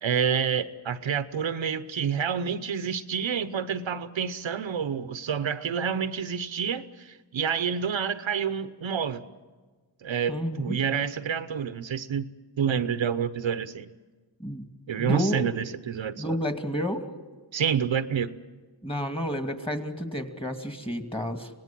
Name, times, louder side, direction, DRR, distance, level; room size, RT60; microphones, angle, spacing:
voice 1, 0.0-9.3 10.0-12.3 12.6-13.9 14.9-16.4 17.5-18.3, right 7 dB, 75° right, 12 dB, 1.0 m, -28 dB
voice 2, 10.3-10.8 14.4-14.6 15.0-15.5 16.2-17.1 18.8-21.5, equal, 10° left, 6 dB, 2.5 m, -30 dB
25.5 x 19.0 x 7.6 m, 1.4 s
cardioid pair, 65°, 47 cm